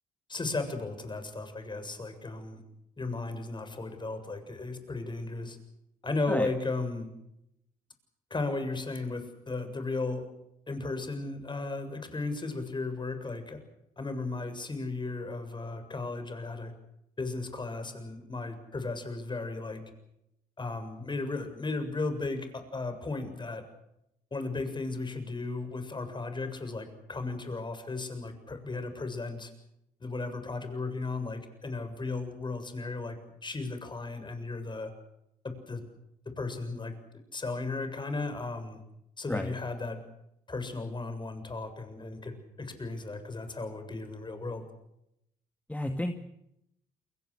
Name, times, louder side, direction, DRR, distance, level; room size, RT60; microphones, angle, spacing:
voice 1, 0.3-2.6 3.0-5.6 6.0-7.1 8.3-10.3 10.7-13.6 14.0-16.7 17.2-19.8 20.6-23.7 24.3-29.5 30.0-34.9 35.4-35.8 36.3-37.0 37.3-38.8 39.2-40.0 40.5-44.6, left 3 dB, 30° left, 8 dB, 7.2 m, -35 dB
voice 2, 45.7-46.1, left 1 dB, 10° left, 5 dB, 2.4 m, -31 dB
29.5 x 22.0 x 6.6 m, 0.81 s
supercardioid pair, 65°, 15 cm